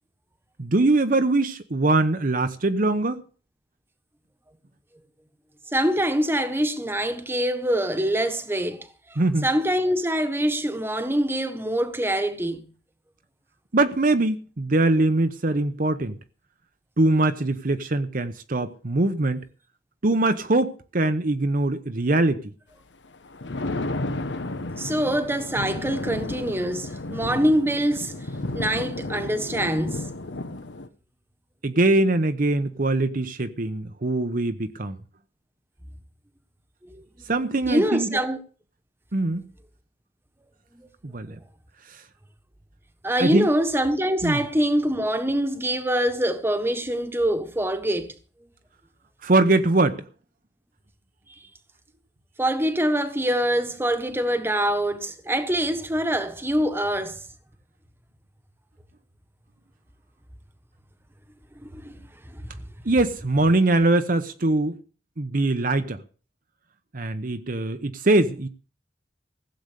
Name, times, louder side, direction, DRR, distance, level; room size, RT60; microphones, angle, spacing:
voice 1, 0.6-3.2 9.2-9.5 13.7-16.2 17.0-19.4 20.0-22.5 31.6-35.0 37.3-38.2 39.1-39.5 41.0-41.4 41.9-42.0 43.2-43.5 44.2-44.4 49.2-50.0 62.8-64.8 65.2-66.0 66.9-68.5, right 2 dB, 50° right, 0.9 m, -22 dB
voice 2, 5.7-12.7 24.8-28.2 28.5-30.1 36.9-37.0 37.7-38.4 40.7-40.9 43.0-48.1 52.4-57.2 61.6-62.0 62.3-62.4, right 1 dB, 15° right, 1.3 m, -24 dB
Thunder, 23.1-30.9, left 2 dB, 75° left, 1.1 m, -32 dB
15.5 x 7.9 x 6.8 m
head